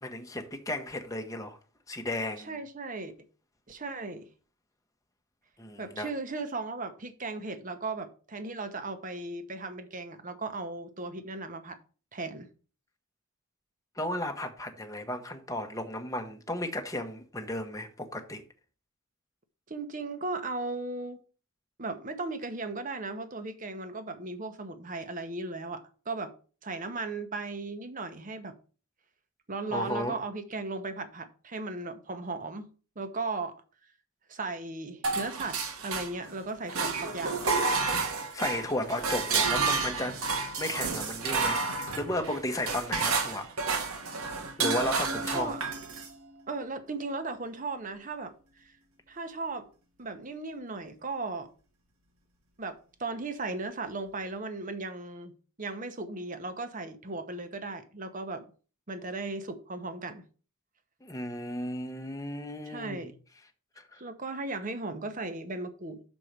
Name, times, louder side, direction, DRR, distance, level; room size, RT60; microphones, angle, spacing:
voice 1, 0.0-1.6 1.9-2.5 5.6-6.1 14.0-18.4 29.7-30.2 38.3-40.2 40.6-43.5 44.6-45.5 61.0-63.1 63.8-64.0, left 1 dB, 15° left, 0.9 m, -34 dB
voice 2, 2.4-3.1 3.7-4.3 5.8-11.8 12.1-12.5 19.7-21.2 21.8-26.3 26.6-28.6 29.5-32.7 33.0-33.5 34.3-37.4 45.3-45.6 46.5-48.7 49.1-49.7 50.0-51.5 52.6-55.3 55.6-58.5 58.9-60.2 62.7-63.1 64.0-66.0, right 3 dB, 40° right, 0.9 m, -36 dB
sound 1, 35.0-36.4 36.7-46.1, right 4 dB, 85° right, 1.4 m, -30 dB
6.3 x 4.5 x 6.6 m
head